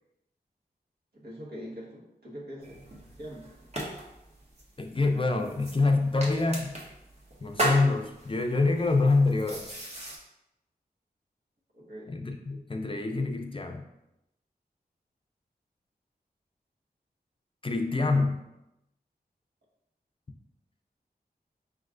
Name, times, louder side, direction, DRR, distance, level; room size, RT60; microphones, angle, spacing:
voice 1, 1.1-2.8 3.2-3.5 11.7-12.1, equal, 70° right, -5 dB, 1.3 m, -43 dB
sound 1, 2.6-10.2, right 1 dB, 40° right, 1.1 m, -37 dB
voice 2, 4.8-6.7 7.4-9.8 12.1-13.8 17.6-18.4, left 3 dB, 30° left, 4 dB, 0.5 m, -26 dB
5.1 x 3.2 x 2.5 m, 0.89 s
cardioid pair, 50°, 17 cm